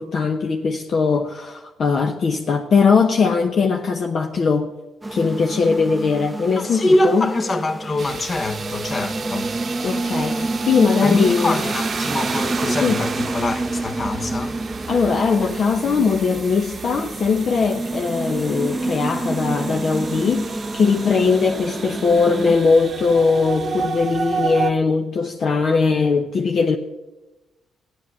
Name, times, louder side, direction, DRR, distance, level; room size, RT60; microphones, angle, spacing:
voice 1, 0.0-4.7 5.1-7.3 9.8-11.6 12.8-13.0 14.9-26.8, left 5 dB, 55° left, 0.9 m, -20 dB
sound 1, 5.0-22.6, right 2 dB, 10° right, 0.6 m, -28 dB
voice 2, 6.6-9.5 11.0-14.6, left 2 dB, 35° left, 1.3 m, -23 dB
sound 2, 8.0-24.7, right 5 dB, 45° right, 0.9 m, -31 dB
14.0 x 9.8 x 7.4 m
cardioid pair, 90°, 0 cm